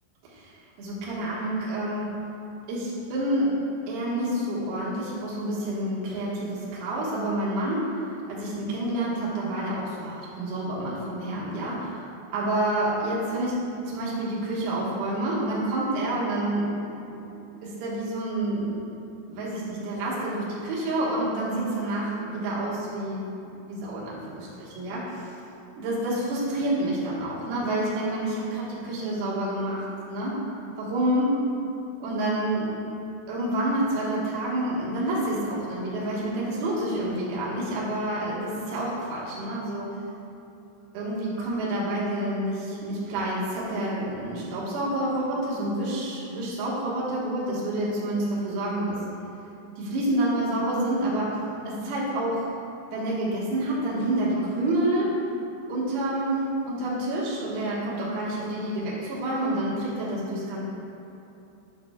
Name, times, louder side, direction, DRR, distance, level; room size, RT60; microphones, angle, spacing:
voice 1, 0.2-2.1 2.7-3.6 3.9-12.0 12.3-13.6 13.9-16.7 17.1-17.2 17.6-18.7 19.3-25.3 25.8-30.4 30.8-31.4 32.0-32.7 33.3-40.0 40.9-49.0 49.8-51.4 51.7-52.5 52.9-55.1 55.7-60.6, right 1 dB, 70° right, -7 dB, 3.1 m, -28 dB
8.8 x 6.7 x 2.3 m, 2.9 s
omnidirectional pair, 5.4 m